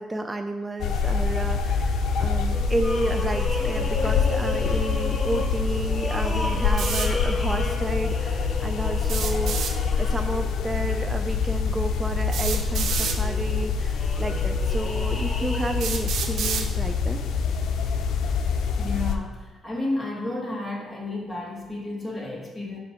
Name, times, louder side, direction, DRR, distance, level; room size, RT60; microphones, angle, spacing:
voice 1, 0.0-17.2, right 2 dB, 20° right, 5 dB, 0.4 m, -31 dB
sound 1, 0.8-19.1, left 5 dB, 75° left, 0.5 m, -25 dB
sound 2, 2.5-10.5 11.1-11.2 12.5-15.7, left 2 dB, 30° left, 0.8 m, -34 dB
sound 3, 6.8-7.1 9.0-9.7 11.2-11.3 12.3-13.2 14.2-14.3 15.0-15.1 15.8-16.7, right 6 dB, 75° right, 0.7 m, -29 dB
voice 2, 18.8-22.8, left 2 dB, 10° left, -2 dB, 1.6 m, -32 dB
7.7 x 2.6 x 5.6 m, 1.2 s
cardioid pair, 90°, 0 cm